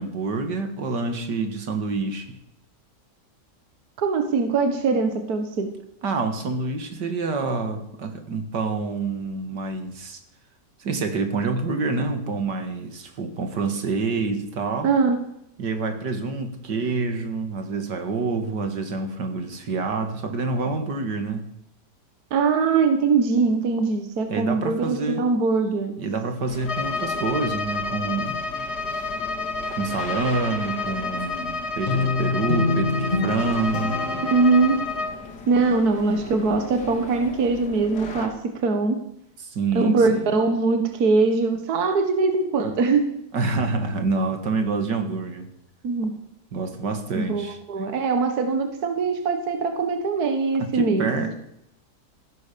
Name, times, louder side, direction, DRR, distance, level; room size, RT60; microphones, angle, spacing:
voice 1, 0.0-2.3 6.0-10.2 10.8-14.9 15.6-21.5 24.3-25.2 26.0-28.4 29.7-34.0 39.4-40.3 43.3-45.5 46.5-47.6 50.6-51.4, right 3 dB, 85° right, 7 dB, 2.4 m, -27 dB
voice 2, 4.0-5.7 14.8-15.2 22.3-26.0 34.2-34.8 35.5-39.0 39.8-43.1 45.8-46.2 47.2-51.1, right 4 dB, 65° right, 6 dB, 1.8 m, -22 dB
sound 1, 26.4-38.3, left 3 dB, 80° left, 2.7 m, -38 dB
Bowed string instrument, 26.6-35.2, left 3 dB, 40° left, 1.5 m, -30 dB
Guitar, 31.9-35.1, left 3 dB, 25° left, 2.5 m, -26 dB
15.0 x 11.5 x 6.9 m, 0.78 s
omnidirectional pair, 1.8 m